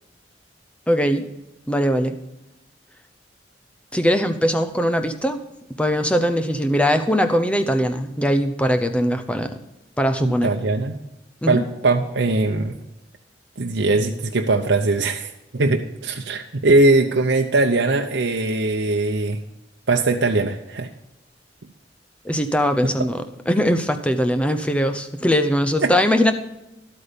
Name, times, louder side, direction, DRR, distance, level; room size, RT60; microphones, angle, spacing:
voice 1, 0.9-1.3 1.7-2.2 3.9-5.4 5.8-9.6 10.0-10.5 11.4-11.6 22.2-26.3, equal, 5° left, 8 dB, 0.7 m, -21 dB
voice 2, 10.2-11.0 11.5-12.7 13.6-19.4 19.9-20.9 25.8-25.9, right 2 dB, 85° right, 3 dB, 0.8 m, -20 dB
12.0 x 8.5 x 5.1 m, 0.92 s
head